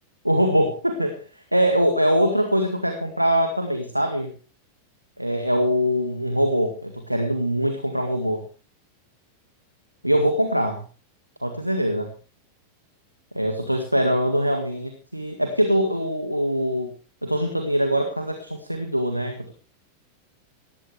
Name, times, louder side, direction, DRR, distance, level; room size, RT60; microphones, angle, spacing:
voice 1, 0.2-4.3 5.2-8.4 10.0-10.8 11.4-12.1 13.4-16.9 17.2-19.5, equal, 90° right, 6 dB, 1.8 m, -23 dB
18.5 x 15.0 x 3.3 m, 0.35 s
figure-of-eight pair, 90°, 0 cm